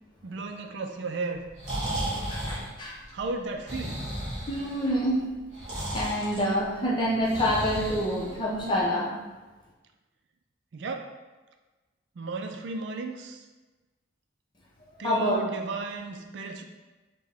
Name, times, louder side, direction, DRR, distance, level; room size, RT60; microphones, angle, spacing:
voice 1, 0.2-1.4 3.1-4.0 10.7-11.1 12.2-13.4 15.0-16.6, right 3 dB, 70° right, 5 dB, 0.4 m, -34 dB
Breathing, 1.4-8.8, right 1 dB, 35° right, 1.3 m, -35 dB
voice 2, 2.3-3.0 4.5-5.2 5.9-9.1 15.0-15.4, equal, 25° left, -4 dB, 0.7 m, -27 dB
5.2 x 2.2 x 3.5 m, 1.2 s
head